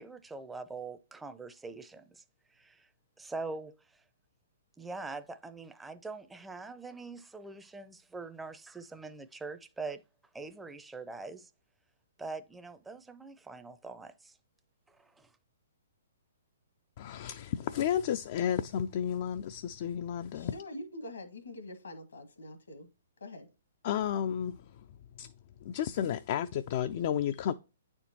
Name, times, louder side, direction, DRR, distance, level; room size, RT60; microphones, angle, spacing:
voice 1, 0.0-2.2 2.5-2.9 3.2-4.0 4.8-10.0 10.3-11.5 12.2-14.4 14.9-15.3, right 3 dB, 5° right, 0.5 m, -43 dB
voice 2, 17.0-20.5 23.8-24.8 25.2-25.3 25.6-27.5, left 9 dB, 50° left, 0.3 m, -32 dB
voice 3, 20.3-22.9 23.2-23.5, left 1 dB, 80° left, 1.6 m, -44 dB
9.0 x 4.4 x 2.8 m
hypercardioid pair, 130°, 0 cm